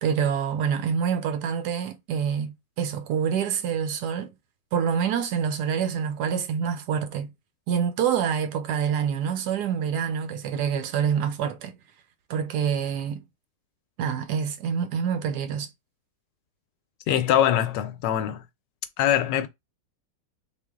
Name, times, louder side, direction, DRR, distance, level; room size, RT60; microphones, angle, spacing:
voice 1, 0.0-4.3 4.7-7.3 7.7-11.8 12.3-13.2 14.0-15.7, right 7 dB, 70° right, 1.1 m, -26 dB
voice 2, 17.1-18.4 19.0-19.5, left 10 dB, 75° left, 1.2 m, -23 dB
4.0 x 2.5 x 3.6 m
omnidirectional pair, 2.1 m